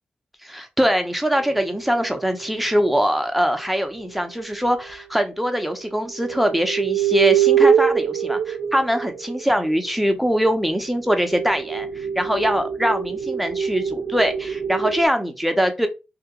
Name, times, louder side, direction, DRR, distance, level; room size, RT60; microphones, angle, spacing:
voice 1, 0.4-15.9, equal, 5° right, 0.7 m, -22 dB
sound 1, 1.4-3.1 4.7-4.8 6.1-9.7 10.7-15.0, right 8 dB, 85° right, 0.3 m, -24 dB
2.8 x 2.4 x 3.6 m
cardioid pair, 70°, 3 cm